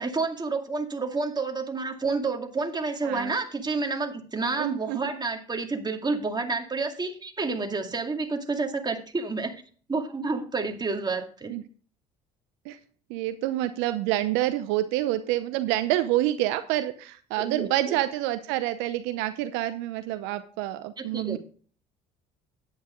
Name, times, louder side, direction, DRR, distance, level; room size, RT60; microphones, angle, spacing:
voice 1, 0.0-9.5 9.9-11.5 17.4-18.0 21.0-21.4, right 3 dB, 20° right, 4 dB, 2.3 m, -29 dB
voice 2, 3.0-3.3 4.6-5.0 11.5-11.6 12.6-12.8 13.1-21.4, right 14 dB, 75° right, 11 dB, 0.8 m, -27 dB
10.0 x 9.3 x 3.8 m, 0.43 s
hypercardioid pair, 65°, 19 cm